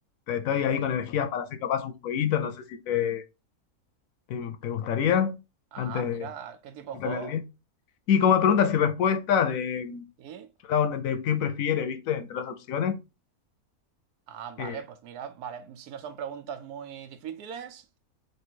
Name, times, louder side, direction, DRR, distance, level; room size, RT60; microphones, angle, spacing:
voice 1, 0.3-3.2 4.3-5.4 5.8-6.3 7.0-7.4 8.1-10.0 10.7-13.0 14.6-14.8, left 8 dB, 70° left, 0.9 m, -26 dB
voice 2, 5.7-7.4 10.2-10.5 14.3-17.9, right 8 dB, 85° right, 1.2 m, -39 dB
3.2 x 2.9 x 4.3 m
omnidirectional pair, 1.6 m